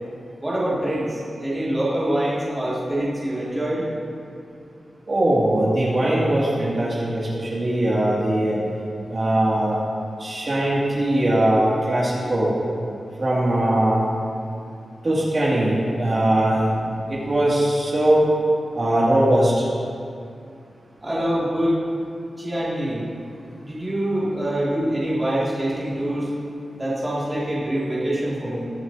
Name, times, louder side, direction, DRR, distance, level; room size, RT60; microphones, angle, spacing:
voice 1, 0.4-3.8 21.0-21.8 22.4-23.1 23.6-26.3 26.8-28.7, right 1 dB, 15° right, -8 dB, 2.2 m, -25 dB
voice 2, 5.1-8.6 9.1-9.8 10.2-12.5 13.2-14.1 15.0-18.3 18.7-19.7, right 1 dB, 35° right, -7 dB, 2.2 m, -20 dB
20.0 x 7.8 x 2.7 m, 2.4 s
wide cardioid pair, 165°, 0 cm